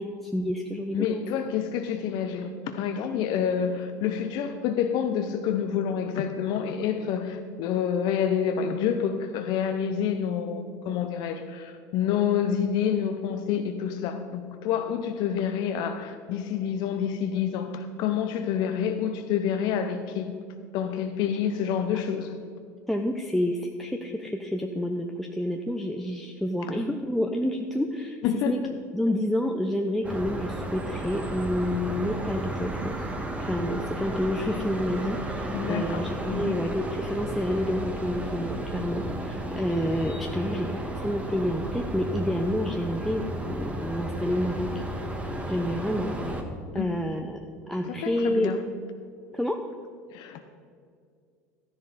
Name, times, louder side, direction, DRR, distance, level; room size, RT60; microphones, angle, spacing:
voice 1, 0.0-1.2 22.9-28.2 28.5-28.6 28.9-32.9 33.4-44.8 45.5-46.1 46.7-47.4 47.7-48.5 49.3-49.6, left 1 dB, ahead, 4 dB, 0.8 m, -29 dB
voice 2, 0.9-20.4 20.7-22.4 28.2-28.7 35.5-36.6 46.7-47.0 47.8-48.6 50.1-50.4, left 8 dB, 55° left, 7 dB, 0.7 m, -28 dB
sound 1, 30.0-46.4, right 1 dB, 15° right, 1.6 m, -33 dB
13.0 x 10.5 x 4.1 m, 2.2 s
hypercardioid pair, 75°, 9 cm